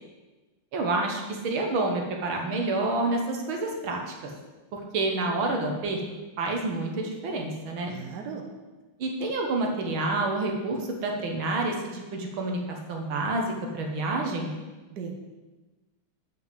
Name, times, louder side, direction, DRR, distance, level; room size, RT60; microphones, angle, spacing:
voice 1, 0.7-4.1 4.7-6.0 6.4-7.9 9.0-14.5, right 2 dB, 80° right, 1 dB, 2.1 m, -28 dB
voice 2, 7.8-8.5 14.9-15.4, right 5 dB, 60° right, 2 dB, 1.5 m, -38 dB
7.5 x 6.0 x 7.6 m, 1.2 s
omnidirectional pair, 2.2 m